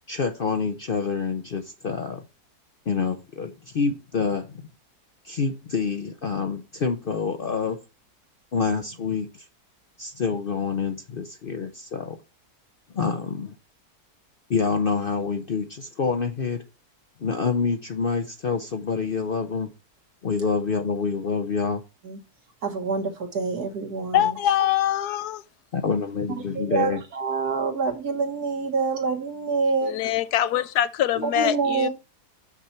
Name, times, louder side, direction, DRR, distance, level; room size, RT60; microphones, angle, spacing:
voice 1, 0.1-2.2 2.9-4.5 5.2-7.8 8.5-9.3 10.0-12.2 12.9-13.5 14.5-16.6 17.2-19.7 20.2-21.8 25.7-27.0, left 5 dB, 55° left, 0.6 m, -27 dB
voice 2, 22.6-24.3 26.7-29.9 31.2-31.9, right 4 dB, 80° right, 2.1 m, -26 dB
voice 3, 24.1-25.4 29.8-31.9, left 11 dB, 80° left, 1.2 m, -23 dB
6.9 x 6.0 x 4.3 m
omnidirectional pair, 1.7 m